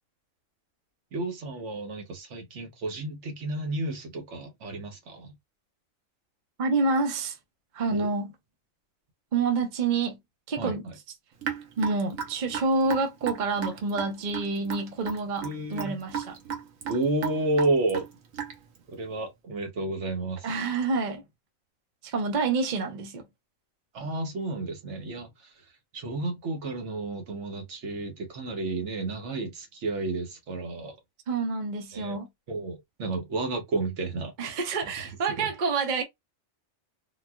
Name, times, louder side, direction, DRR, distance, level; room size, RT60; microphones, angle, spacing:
voice 1, 1.1-5.3 7.9-8.1 10.6-10.8 15.4-16.0 16.9-18.1 18.9-20.5 23.9-25.5 25.9-31.0 31.9-32.2 32.5-34.3 34.8-34.9 35.4-35.5, right 2 dB, 65° right, 1.1 m, -31 dB
voice 2, 6.6-7.4 7.7-8.3 9.3-10.2 10.5-10.9 11.8-16.4 20.4-21.2 22.0-23.2 31.3-32.3 34.4-36.0, right 4 dB, 40° right, 0.7 m, -28 dB
Raindrop / Drip, 11.4-18.8, right 8 dB, 85° right, 1.2 m, -35 dB
3.9 x 2.3 x 2.2 m
omnidirectional pair, 1.4 m